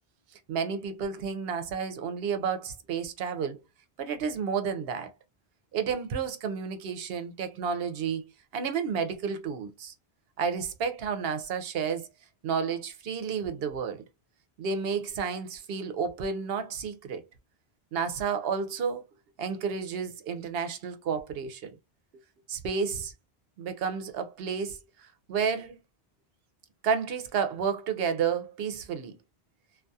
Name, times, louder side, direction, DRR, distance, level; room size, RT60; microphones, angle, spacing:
voice 1, 0.5-3.6 4.0-5.1 5.7-8.2 8.5-9.9 10.4-12.1 12.4-14.0 14.6-17.2 17.9-19.1 19.4-21.7 22.5-23.1 23.6-24.8 25.3-25.8 26.8-29.1, right 6 dB, 70° right, 0.8 m, -31 dB
2.3 x 2.3 x 2.6 m
omnidirectional pair, 1.1 m